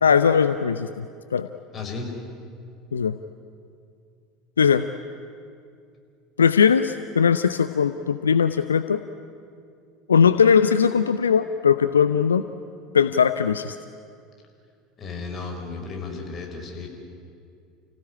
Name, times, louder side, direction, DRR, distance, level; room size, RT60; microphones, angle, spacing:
voice 1, 0.0-1.1 1.3-1.5 2.9-3.1 4.6-4.8 6.4-9.0 10.1-12.4 12.9-13.7, left 6 dB, 80° left, 11 dB, 0.6 m, -19 dB
voice 2, 1.7-2.1 15.0-16.9, left 4 dB, 30° left, 2 dB, 5.9 m, -34 dB
29.5 x 16.5 x 10.0 m, 2.3 s
figure-of-eight pair, 70°, 0 cm